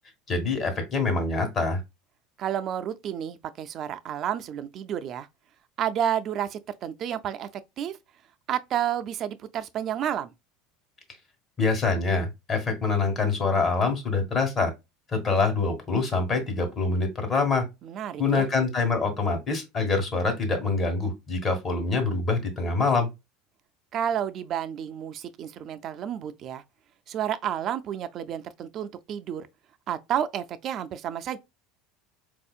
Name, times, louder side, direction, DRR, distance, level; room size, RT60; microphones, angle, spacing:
voice 1, 0.3-1.8 11.6-14.7 15.1-17.6 18.2-23.1, left 4 dB, 30° left, 1.2 m, -25 dB
voice 2, 2.4-5.3 5.8-7.5 7.8-8.0 8.5-10.3 17.8-18.5 23.9-26.6 27.1-29.5 29.9-31.4, right 10 dB, 40° right, 0.3 m, -30 dB
4.2 x 2.7 x 2.3 m
supercardioid pair, 130°, 0 cm